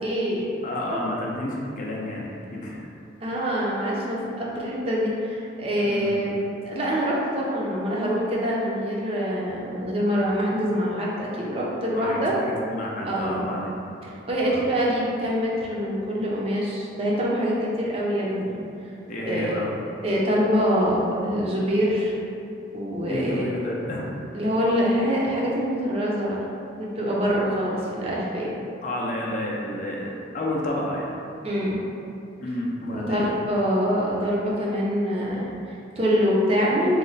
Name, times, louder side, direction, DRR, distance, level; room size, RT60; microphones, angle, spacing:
voice 1, 0.0-0.5 0.9-1.0 3.2-6.3 6.7-12.3 13.0-13.5 14.0-18.6 19.3-19.6 20.0-22.1 22.7-23.5 24.3-26.4 26.8-28.6 31.4-31.8 32.9-37.0, equal, 30° right, -5 dB, 0.5 m, -25 dB
voice 2, 0.6-2.9 4.5-4.6 5.9-6.3 11.9-13.7 14.4-14.6 19.1-19.7 23.1-24.1 28.8-31.2 32.4-33.2, left 1 dB, 45° left, -3 dB, 0.4 m, -30 dB
3.1 x 2.1 x 3.8 m, 2.7 s
head